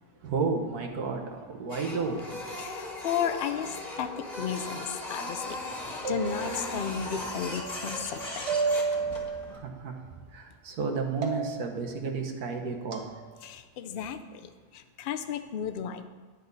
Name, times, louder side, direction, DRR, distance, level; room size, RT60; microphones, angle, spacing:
voice 1, 0.2-2.2 9.6-9.9 10.3-13.0, right 4 dB, 90° right, 3 dB, 1.6 m, -32 dB
Printer, 1.7-9.6, left 2 dB, 30° left, 1.4 m, -38 dB
voice 2, 2.6-5.6 6.1-8.4 13.4-14.4 14.7-16.1, left 8 dB, 75° left, 8 dB, 0.5 m, -34 dB
sound 1, 6.0-6.9 8.5-9.4 11.2-11.8 12.9-13.1, right 4 dB, 55° right, 1.2 m, -30 dB
10.5 x 8.4 x 4.0 m, 1.5 s
omnidirectional pair, 1.6 m